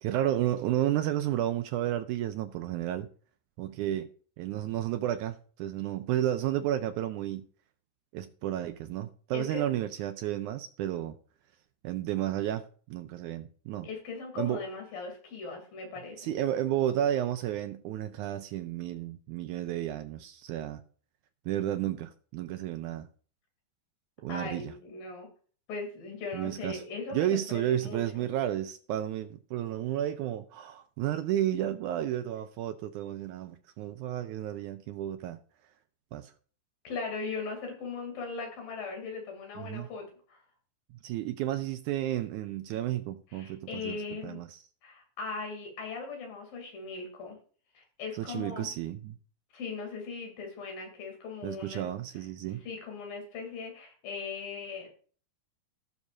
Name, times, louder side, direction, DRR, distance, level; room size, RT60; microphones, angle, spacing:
voice 1, 0.0-3.1 3.6-4.1 4.4-7.5 8.1-11.1 11.8-13.9 14.4-14.6 16.2-20.8 21.5-23.1 24.2-24.7 26.3-26.8 27.1-35.4 36.1-36.3 39.6-39.9 41.0-44.0 44.2-44.6 48.1-49.2 51.4-52.6, right 12 dB, 80° right, 1.9 m, -32 dB
voice 2, 13.8-16.3 24.3-25.3 25.7-28.3 36.8-40.4 43.3-44.4 44.8-47.4 47.8-48.7 49.5-51.8 52.6-54.9, left 4 dB, 85° left, 4.3 m, -39 dB
17.5 x 6.4 x 2.5 m
omnidirectional pair, 3.9 m